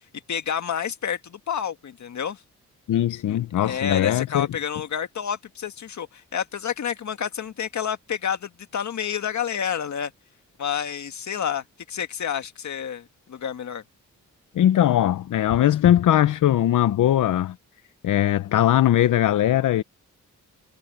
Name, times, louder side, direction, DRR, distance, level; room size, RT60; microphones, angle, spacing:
voice 1, 0.3-2.4 3.3-10.1 10.6-13.8, left 8 dB, 65° left, 1.8 m, -29 dB
voice 2, 2.9-4.5 14.5-17.6 18.0-19.8, left 12 dB, 80° left, 0.8 m, -20 dB
cardioid pair, 80°, 31 cm